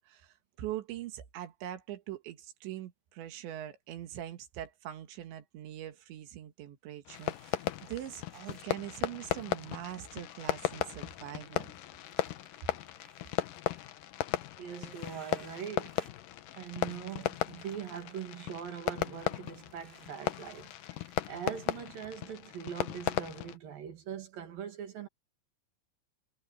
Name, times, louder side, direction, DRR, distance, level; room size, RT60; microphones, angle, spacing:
voice 1, 0.0-11.7, right 12 dB, 80° right, 4.0 m, -42 dB
Fireworks, 7.1-23.6, left 13 dB, 75° left, 2.0 m, -36 dB
sound 1, 7.1-8.7 9.2-14.1 14.7-16.2 17.0-22.2, right 1 dB, 10° right, 5.9 m, -63 dB
voice 2, 14.6-15.9 16.5-25.1, right 8 dB, 55° right, 3.6 m, -42 dB
omnidirectional pair, 5.2 m